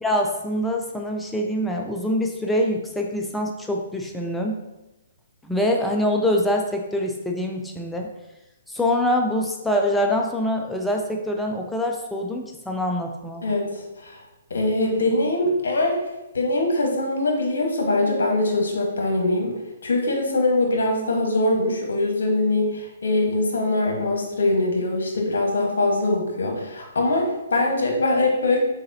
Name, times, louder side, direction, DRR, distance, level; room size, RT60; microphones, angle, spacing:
voice 1, 0.0-4.6 5.4-8.1 8.7-13.4, left 1 dB, 5° left, 1 dB, 0.3 m, -24 dB
voice 2, 14.5-16.0 16.3-19.5 19.8-28.6, left 2 dB, 80° left, 1 dB, 1.1 m, -22 dB
4.0 x 3.9 x 2.7 m, 1.0 s
hypercardioid pair, 145°, 0 cm